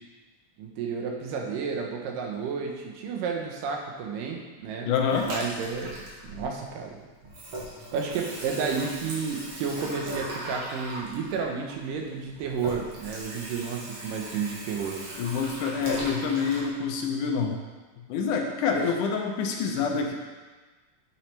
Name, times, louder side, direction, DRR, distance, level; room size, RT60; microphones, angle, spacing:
voice 1, 0.6-4.9 5.2-5.9 6.2-7.0 7.9-15.0, right 5 dB, 90° right, 1 dB, 2.5 m, -31 dB
voice 2, 4.8-5.3 15.2-17.6 18.1-20.1, left 5 dB, 75° left, 2 dB, 2.1 m, -27 dB
Water tap faucet / Sink (filling or washing), 5.1-6.9 7.2-16.7, right 1 dB, 50° right, 2.0 m, -38 dB
8.5 x 6.0 x 3.3 m, 1.3 s
omnidirectional pair, 3.8 m